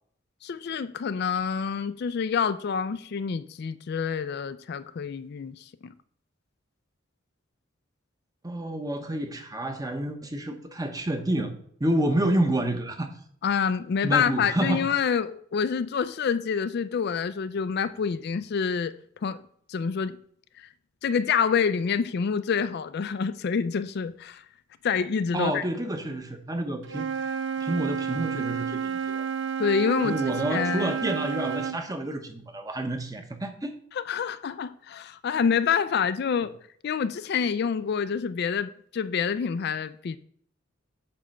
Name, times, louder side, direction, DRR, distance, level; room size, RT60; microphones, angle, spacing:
voice 1, 0.4-5.6 5.8-5.9 13.4-18.9 19.2-19.4 19.7-20.2 21.0-24.4 24.8-25.6 29.6-30.2 30.5-30.9 33.9-36.5 36.8-40.2, left 6 dB, 55° left, 0.4 m, -27 dB
voice 2, 8.4-11.5 11.8-13.1 14.0-14.8 25.3-27.1 27.6-29.2 30.0-33.8, right 1 dB, 20° right, 0.9 m, -29 dB
Wind instrument woodwind instrument, 26.8-31.8, right 7 dB, 65° right, 0.6 m, -30 dB
8.7 x 3.4 x 6.4 m
head